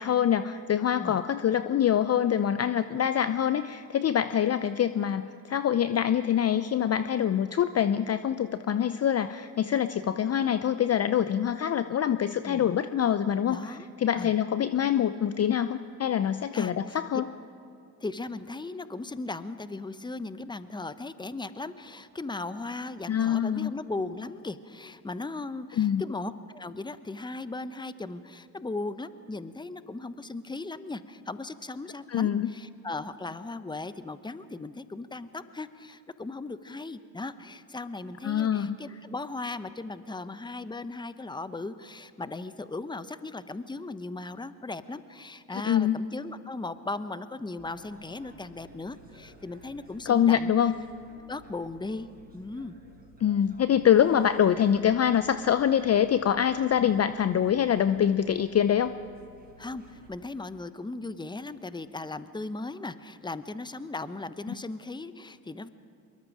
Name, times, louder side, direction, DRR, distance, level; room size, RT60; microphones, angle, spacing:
voice 1, 0.0-17.2 23.1-23.8 25.8-26.0 32.1-32.5 38.2-38.8 45.5-46.0 50.1-50.7 53.2-59.0, left 9 dB, 35° left, 12 dB, 0.7 m, -25 dB
voice 2, 12.4-12.7 13.5-13.9 14.2-14.3 16.5-17.0 18.0-50.5 51.3-52.1 52.3-52.7 59.6-65.7, left 3 dB, 10° left, 13 dB, 1.0 m, -37 dB
sound 1, 47.6-60.1, right 1 dB, 20° right, 5.0 m, -55 dB
24.5 x 22.0 x 5.0 m, 2.5 s
hypercardioid pair, 55°, 46 cm